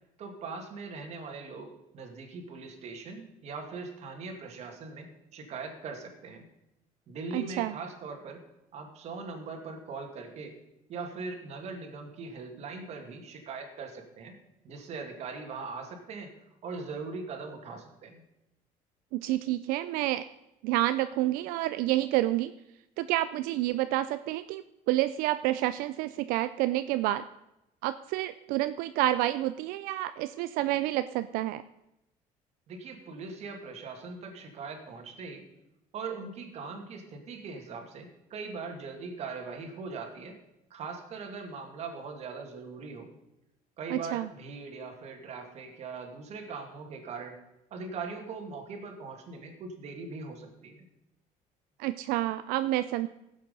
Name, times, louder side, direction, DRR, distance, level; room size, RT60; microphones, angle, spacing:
voice 1, 0.2-6.4 7.1-8.4 8.7-10.5 10.9-14.3 14.6-16.3 16.6-18.2 32.7-35.4 35.9-40.4 40.7-43.1 43.8-47.4 47.7-50.9, right 4 dB, 50° right, 4 dB, 2.3 m, -40 dB
voice 2, 7.3-7.7 19.1-20.2 20.6-22.5 23.0-27.2 27.8-31.6 43.9-44.3 51.8-53.1, right 15 dB, 90° right, 12 dB, 0.4 m, -29 dB
16.5 x 7.6 x 5.4 m, 0.88 s
cardioid pair, 145°, 14 cm